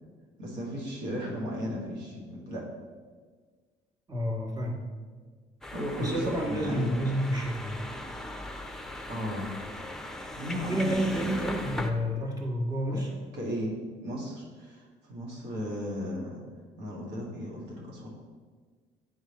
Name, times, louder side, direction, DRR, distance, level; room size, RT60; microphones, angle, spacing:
voice 1, 0.4-2.6 5.7-6.9 9.1-9.5 10.3-11.6 12.9-13.1 13.3-16.4 16.8-18.1, equal, 80° right, -3 dB, 1.7 m, -35 dB
voice 2, 4.1-4.8 6.0-7.8 10.7-13.1, equal, 25° right, -1 dB, 1.5 m, -30 dB
sound 1, 5.6-11.9, left 1 dB, 5° left, 0.8 m, -39 dB
9.4 x 3.3 x 4.2 m, 1.5 s
supercardioid pair, 65°, 17 cm